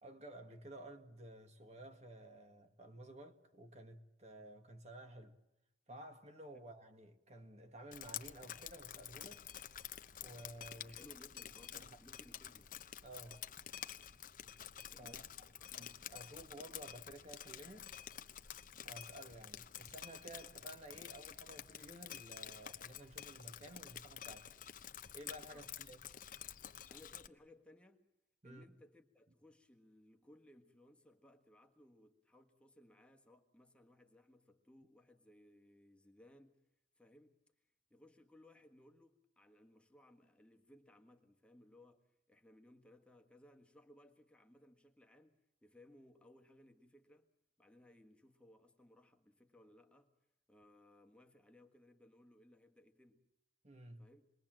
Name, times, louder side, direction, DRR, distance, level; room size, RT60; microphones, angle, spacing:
voice 1, 0.0-5.4 5.9-9.5 10.2-11.1 11.7-12.0 13.0-13.5 14.8-15.2 15.8-17.9 18.8-24.5 25.1-26.0 28.4-28.6 53.6-54.1, right 1 dB, 40° right, 1.9 m, -53 dB
Drip, 7.9-27.3, left 10 dB, 50° left, 0.9 m, -50 dB
voice 2, 10.9-12.7 14.9-15.9 25.5-25.7 26.9-28.1 28.4-36.7 36.9-47.3 47.6-50.2 50.5-53.2 54.0-54.3, left 1 dB, 5° left, 1.5 m, -64 dB
27.5 x 21.5 x 7.6 m
head